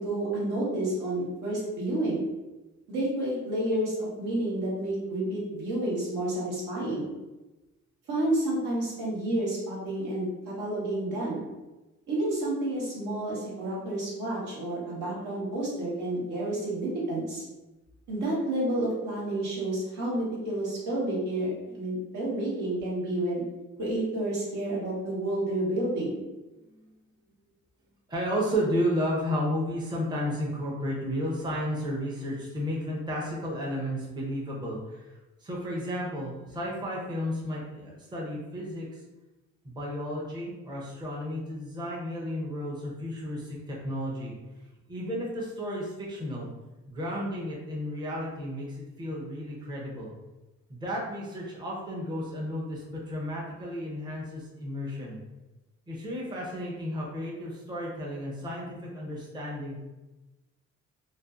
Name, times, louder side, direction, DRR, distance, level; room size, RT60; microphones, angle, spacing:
voice 1, 0.0-2.2 2.9-7.1 8.1-11.5 12.1-17.4 18.1-23.4 23.8-26.2, right 1 dB, 80° right, -6 dB, 1.1 m, -30 dB
voice 2, 28.1-35.1 35.4-38.9 39.6-44.3 44.9-46.5 46.9-50.1 50.7-55.2 55.9-59.8, equal, 15° right, -4 dB, 0.6 m, -33 dB
2.5 x 2.2 x 2.4 m, 1.1 s
cardioid pair, 90°, 30 cm